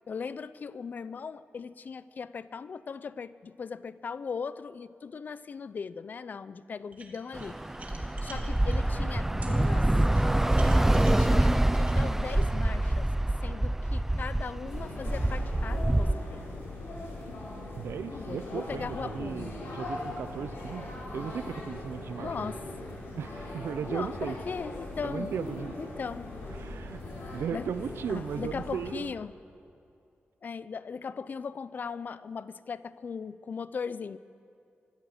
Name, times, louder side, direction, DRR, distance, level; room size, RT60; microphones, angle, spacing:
voice 1, 0.1-7.6 8.2-9.9 10.9-13.1 13.4-16.4 18.1-19.6 22.2-22.6 23.9-25.3 25.8-26.3 27.5-27.7 28.1-29.3 30.4-34.2, left 5 dB, 45° left, 16 dB, 0.5 m, -38 dB
sound 1, 6.9-8.8 9.4-9.5 10.1-12.5, right 3 dB, 35° right, 2.4 m, -48 dB
Bus / Traffic noise roadway noise, 7.3-16.1, right 1 dB, 10° right, 0.4 m, -25 dB
sound 2, 14.6-28.9, left 2 dB, 75° left, 5.3 m, -40 dB
voice 2, 17.8-22.5 23.2-24.4 25.0-25.7 26.5-27.0 27.3-29.1, right 7 dB, 90° right, 13 dB, 0.5 m, -36 dB
24.5 x 14.0 x 7.9 m, 2.6 s
wide cardioid pair, 160°, 4 cm